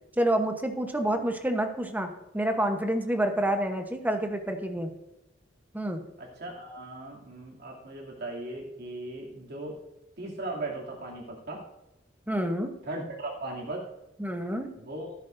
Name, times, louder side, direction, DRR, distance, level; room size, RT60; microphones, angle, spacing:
voice 1, 0.2-4.9 5.7-6.0 12.3-12.7 14.2-14.7, right 1 dB, 10° right, 5 dB, 1.0 m, -28 dB
voice 2, 6.2-9.8 10.2-11.6 12.8-13.9 14.8-15.1, right 2 dB, 60° right, -2 dB, 2.8 m, -38 dB
14.0 x 12.0 x 2.6 m, 0.97 s
head